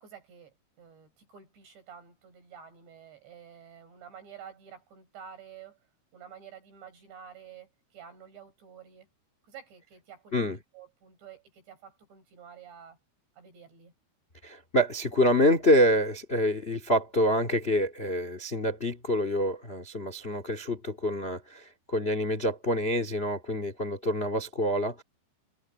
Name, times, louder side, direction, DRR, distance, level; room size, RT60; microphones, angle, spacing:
voice 1, 0.0-5.8 6.1-9.1 9.5-13.0 13.3-13.9, right 7 dB, 65° right, 9.4 m, -50 dB
voice 2, 14.4-25.0, equal, 70° left, 0.5 m, -26 dB
omnidirectional pair, 5.3 m